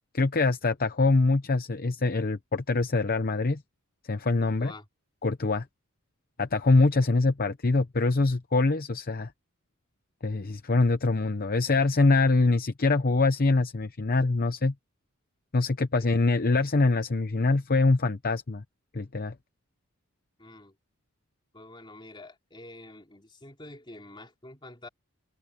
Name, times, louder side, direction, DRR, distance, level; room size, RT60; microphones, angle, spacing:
voice 1, 0.1-3.6 4.1-4.7 5.2-5.7 6.4-9.3 10.2-14.7 15.5-18.6 18.9-19.3, left 3 dB, 45° left, 0.7 m, -24 dB
voice 2, 4.4-4.9 16.0-16.1 20.4-20.7 21.5-24.9, left 2 dB, 20° left, 3.3 m, -47 dB
open air
head